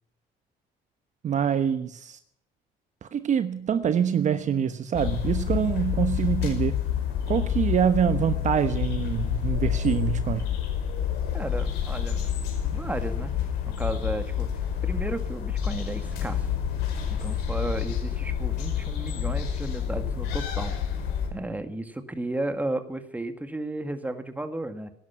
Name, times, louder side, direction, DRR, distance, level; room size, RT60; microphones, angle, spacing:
voice 1, 1.2-2.2 3.0-6.8 7.3-10.5, right 8 dB, 45° right, 1.1 m, -25 dB
sound 1, 4.9-21.3, left 9 dB, 80° left, 5.4 m, -28 dB
voice 2, 11.3-12.3 12.6-13.3 13.8-14.5 14.8-16.5 17.2-20.7 21.3-24.9, right 2 dB, 10° right, 2.0 m, -33 dB
18.5 x 11.0 x 5.9 m
cardioid pair, 110°, 17 cm